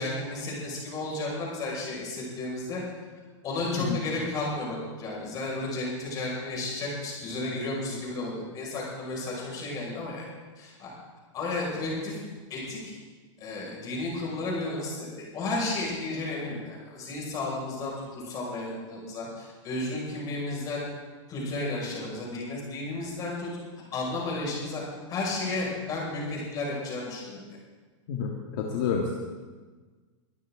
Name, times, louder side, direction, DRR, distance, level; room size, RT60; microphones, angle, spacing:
voice 1, 0.0-2.8 3.4-10.3 10.6-10.9 11.3-12.2 12.5-12.9 13.4-20.8 21.3-23.5 23.9-27.4, left 2 dB, 25° left, -3 dB, 5.5 m, -33 dB
voice 2, 28.1-29.1, left 6 dB, 45° left, 1 dB, 1.7 m, -29 dB
23.5 x 14.5 x 3.7 m, 1.4 s
supercardioid pair, 165°, 17 cm